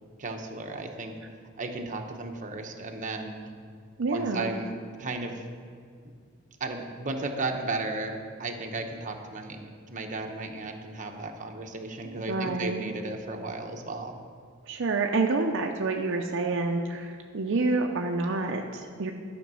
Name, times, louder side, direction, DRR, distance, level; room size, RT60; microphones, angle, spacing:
voice 1, 0.2-1.1 1.6-3.5 4.1-5.4 6.6-14.1, right 2 dB, 40° right, 3 dB, 0.9 m, -35 dB
voice 2, 4.0-4.5 12.0-12.9 14.7-19.1, right 3 dB, 65° right, 3 dB, 0.6 m, -28 dB
12.0 x 5.2 x 6.2 m, 2.2 s
head